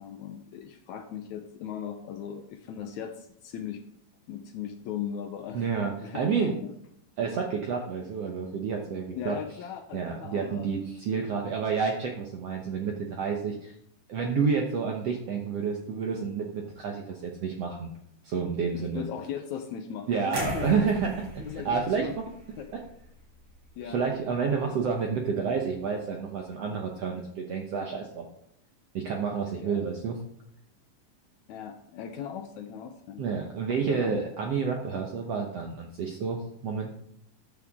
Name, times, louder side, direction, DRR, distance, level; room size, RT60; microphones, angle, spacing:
voice 1, 0.0-3.8 4.3-5.7 6.0-6.7 9.1-10.7 18.7-20.7 21.4-22.2 23.7-24.0 29.6-29.8 31.5-33.2 33.8-34.2, left 8 dB, 75° left, 6 dB, 1.8 m, -38 dB
voice 2, 5.5-6.6 7.2-9.4 9.9-13.7 14.1-17.9 18.2-19.0 20.1-22.1 23.8-28.3 28.9-30.2 33.2-36.9, right 5 dB, 70° right, 2 dB, 1.6 m, -29 dB
sound 1, 20.3-24.4 24.7-24.9, right 1 dB, 45° right, 5.0 m, -41 dB
13.5 x 8.8 x 3.6 m, 0.71 s
omnidirectional pair, 4.1 m